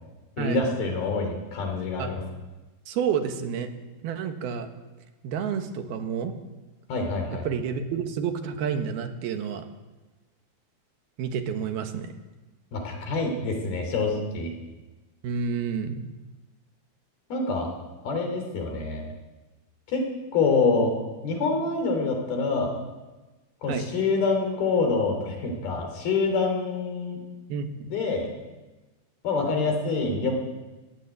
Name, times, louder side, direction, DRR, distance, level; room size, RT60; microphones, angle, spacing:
voice 1, 0.4-2.2 6.9-7.5 12.7-14.5 17.3-17.7 18.1-19.1 19.9-20.1 20.3-21.0 21.2-22.7 23.6-27.2 27.9-28.3 29.2-30.3, left 4 dB, 70° left, 4 dB, 5.3 m, -26 dB
voice 2, 2.9-3.7 4.0-4.7 5.2-6.3 7.4-9.6 11.2-12.1 15.2-16.0 23.7-23.9 27.5-27.9, right 7 dB, 75° right, 6 dB, 3.3 m, -29 dB
21.0 x 15.5 x 8.3 m, 1.2 s
omnidirectional pair, 4.6 m